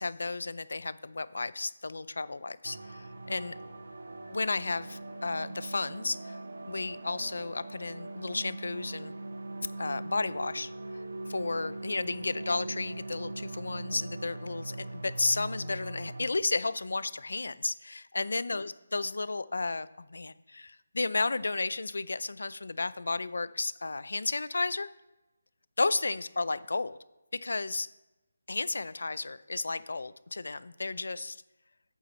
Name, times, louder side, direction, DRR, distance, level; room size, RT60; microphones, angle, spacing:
voice 1, 0.0-3.5 4.3-6.4 6.7-9.1 9.8-10.7 11.3-24.9 25.8-27.0 27.4-27.9 28.5-31.4, left 3 dB, 75° left, 17 dB, 0.4 m, -33 dB
sound 1, 2.6-16.3, right 2 dB, 65° right, 0.9 m, -41 dB
8.3 x 7.3 x 4.1 m, 0.99 s
figure-of-eight pair, 170°, 0 cm